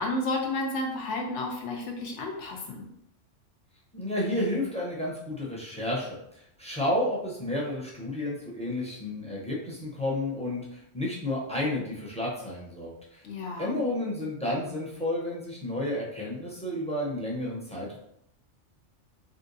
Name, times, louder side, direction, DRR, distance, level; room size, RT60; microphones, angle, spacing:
voice 1, 0.0-2.9 13.2-13.8, left 2 dB, 75° left, 1 dB, 1.0 m, -31 dB
voice 2, 3.9-13.2 13.6-18.0, left 1 dB, 5° left, -5 dB, 0.5 m, -31 dB
3.6 x 2.5 x 2.6 m, 0.77 s
omnidirectional pair, 1.3 m